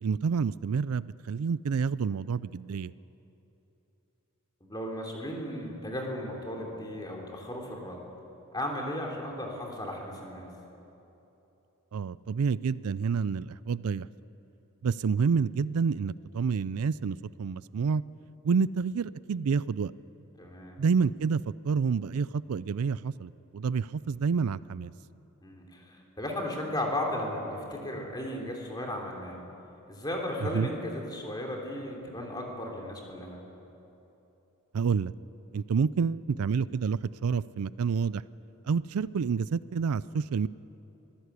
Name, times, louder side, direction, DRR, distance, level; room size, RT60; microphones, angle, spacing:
voice 1, 0.0-2.9 11.9-14.1 14.8-18.0 18.4-19.9 20.8-24.9 30.4-30.7 34.7-35.1 35.5-38.2 38.7-40.5, right 5 dB, 80° right, 18 dB, 0.4 m, -28 dB
voice 2, 4.6-8.0 8.5-10.5 20.4-20.8 25.4-29.4 29.9-33.4, left 1 dB, 20° left, 0 dB, 3.3 m, -35 dB
24.0 x 16.0 x 8.3 m, 3.0 s
head